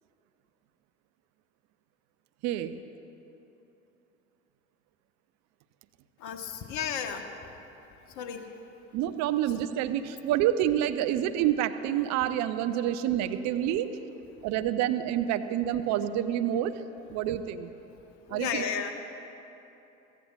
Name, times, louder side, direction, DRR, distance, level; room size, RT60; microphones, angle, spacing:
voice 1, 2.4-2.8 8.9-14.0 14.4-16.8 17.1-17.7 18.3-18.6, right 11 dB, 50° right, 10 dB, 0.7 m, -28 dB
voice 2, 6.2-7.3 8.0-8.5 18.3-18.9, left 8 dB, 50° left, 6 dB, 1.3 m, -33 dB
23.0 x 16.0 x 2.4 m, 3.0 s
figure-of-eight pair, 60°, 36 cm